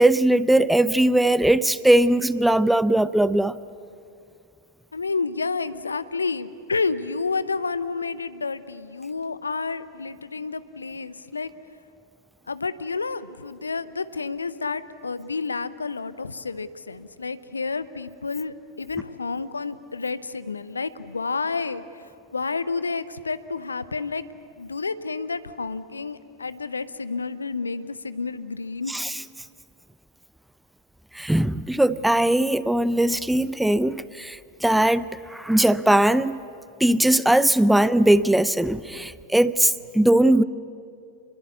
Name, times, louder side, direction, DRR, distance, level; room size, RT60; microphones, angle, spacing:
voice 1, 0.0-3.6 28.9-29.1 31.1-35.0 35.3-36.4 36.8-40.4, right 1 dB, 5° right, 17 dB, 0.5 m, -20 dB
voice 2, 4.9-11.5 12.5-21.8 22.3-24.3 24.6-28.9 38.9-39.1, left 4 dB, 75° left, 15 dB, 0.8 m, -30 dB
27.0 x 21.5 x 8.4 m, 2.4 s
figure-of-eight pair, 90°, 0 cm